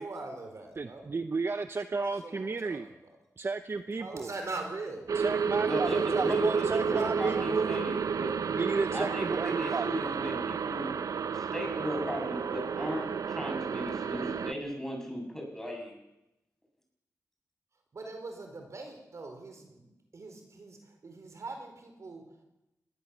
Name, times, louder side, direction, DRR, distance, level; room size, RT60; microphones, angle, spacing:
voice 1, 0.0-1.1 2.2-2.8 4.0-5.1 5.7-7.6 17.9-22.2, right 3 dB, 60° right, 5 dB, 4.6 m, -42 dB
voice 2, 0.8-2.9 3.4-4.3 5.2-7.8 8.5-10.1, right 4 dB, 45° right, 10 dB, 0.8 m, -33 dB
sound 1, 5.1-14.5, right 6 dB, 80° right, 0.7 m, -31 dB
voice 3, 5.7-8.3 8.9-10.9 11.3-16.0, equal, 5° left, 0 dB, 7.7 m, -36 dB
21.0 x 18.5 x 7.3 m, 0.94 s
wide cardioid pair, 80°, 6 cm